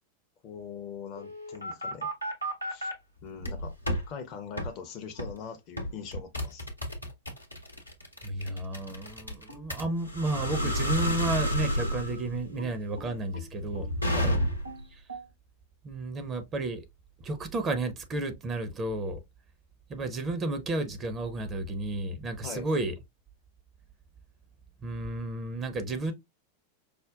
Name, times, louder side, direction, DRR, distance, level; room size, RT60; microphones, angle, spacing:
voice 1, 0.4-2.1 2.7-2.9 3.2-3.7 4.1-6.6 14.1-14.4 22.4-22.7, left 6 dB, 35° left, 0.5 m, -41 dB
sound 1, 1.2-2.9 3.4-4.0 4.6-4.7 5.2-5.4 5.8-14.8, equal, 90° left, 0.8 m, -31 dB
voice 2, 8.2-13.9 14.9-15.0 15.8-16.8 17.2-19.2 19.9-22.9 24.8-26.1, right 2 dB, 25° right, 0.6 m, -32 dB
sound 2, 9.5-12.1 12.6-15.3, right 2 dB, 85° right, 0.8 m, -46 dB
5.0 x 2.1 x 2.3 m
figure-of-eight pair, 90°, 0 cm